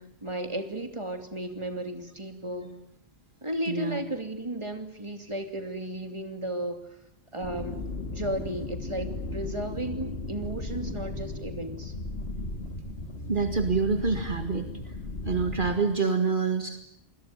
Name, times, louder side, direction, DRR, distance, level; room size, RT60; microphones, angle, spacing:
voice 1, 0.0-2.7 3.4-6.9 7.3-7.8 8.1-11.9, right 1 dB, 30° right, 6 dB, 2.9 m, -34 dB
voice 2, 3.7-4.0 13.3-14.9 15.3-16.8, right 5 dB, 55° right, 6 dB, 2.1 m, -27 dB
sound 1, 7.4-15.8, left 2 dB, 85° left, 2.4 m, -36 dB
28.0 x 21.5 x 9.3 m, 0.75 s
omnidirectional pair, 1.0 m